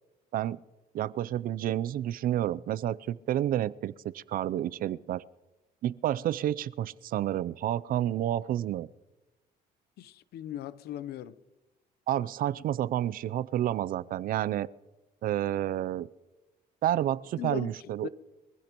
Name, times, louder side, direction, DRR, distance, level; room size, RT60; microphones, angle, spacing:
voice 1, 0.9-5.2 5.8-8.9 12.1-14.7 15.2-16.1 16.8-18.1, right 12 dB, 60° right, 0.5 m, -30 dB
voice 2, 10.0-11.4 17.4-18.1, left 12 dB, 70° left, 0.8 m, -38 dB
24.0 x 15.5 x 3.0 m
cardioid pair, 110°, 17 cm